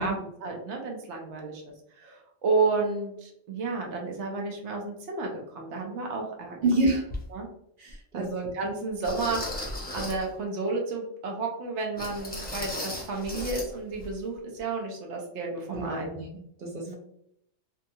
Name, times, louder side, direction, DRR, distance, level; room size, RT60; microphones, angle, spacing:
voice 1, 0.0-1.6 1.9-6.6 7.3-7.5 8.1-16.1 16.8-16.9, right 3 dB, 80° right, 1 dB, 1.0 m, -31 dB
voice 2, 6.6-7.1 7.8-8.2 15.7-16.2 16.6-16.9, right 2 dB, 50° right, -1 dB, 0.9 m, -27 dB
sound 1, 7.1-7.2 7.9-8.0 9.0-10.3 12.0-13.7 14.0-14.1 14.6-14.7, left 1 dB, 15° left, 0.4 m, -35 dB
2.7 x 2.3 x 2.6 m, 0.72 s
omnidirectional pair, 1.1 m